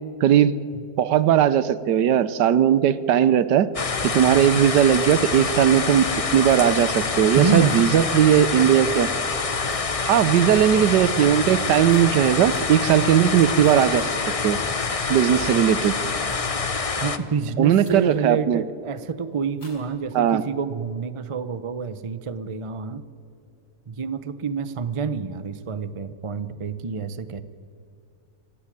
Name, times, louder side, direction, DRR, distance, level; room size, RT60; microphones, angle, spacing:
voice 1, 0.2-0.6 1.0-3.7 4.0-6.1 6.3-9.1 10.1-14.1 14.4-14.6 15.1-15.9 17.6-18.6 20.1-20.4, right 10 dB, 75° right, 16 dB, 1.4 m, -18 dB
sound 1, 3.7-17.2, left 4 dB, 35° left, 0.6 m, -26 dB
sound 2, 6.5-8.0 8.3-8.6 9.0-9.3 9.5-10.7 11.4-13.9 14.3-14.6 15.1-16.7 17.4-17.5 17.8-18.2 18.7-19.1 19.5-20.5, left 2 dB, 65° left, 5.8 m, -51 dB
voice 2, 7.3-7.8 17.0-23.0 23.9-27.4, right 5 dB, 45° right, 13 dB, 0.4 m, -28 dB
26.5 x 16.5 x 9.8 m, 2.5 s
omnidirectional pair, 1.9 m